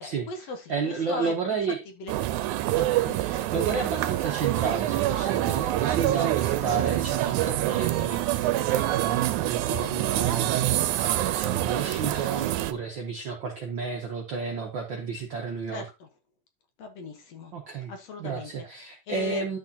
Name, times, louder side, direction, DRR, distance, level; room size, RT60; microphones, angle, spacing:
voice 1, 0.0-1.3 2.0-2.1 3.0-3.2 15.7-15.8 16.8-17.5 17.9-18.5 18.8-19.4, left 3 dB, 60° left, 5 dB, 2.1 m, -37 dB
voice 2, 0.7-1.8 2.7-15.8 17.5-17.9 18.2-19.6, right 5 dB, 65° right, 1 dB, 1.2 m, -32 dB
sound 1, 2.1-12.7, right 14 dB, 80° right, 2.0 m, -26 dB
11.0 x 6.2 x 2.8 m, 0.26 s
omnidirectional pair, 3.6 m